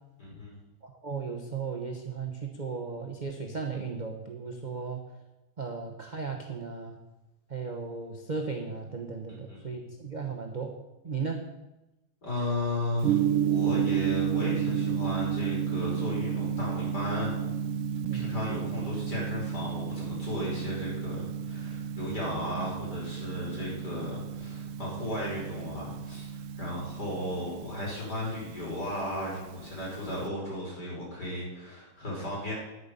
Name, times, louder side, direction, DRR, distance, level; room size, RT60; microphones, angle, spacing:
voice 1, 0.2-0.6 9.3-9.6 12.2-17.4 18.1-32.5, left 1 dB, 50° left, -5 dB, 5.9 m, -35 dB
voice 2, 0.8-5.0 5.6-7.0 7.5-10.7 11.0-11.4 18.1-18.4, right 5 dB, 35° right, 2 dB, 0.7 m, -36 dB
Gong, 13.0-30.3, right 8 dB, 85° right, 1.6 m, -32 dB
10.0 x 9.5 x 6.7 m, 1.0 s
omnidirectional pair, 2.3 m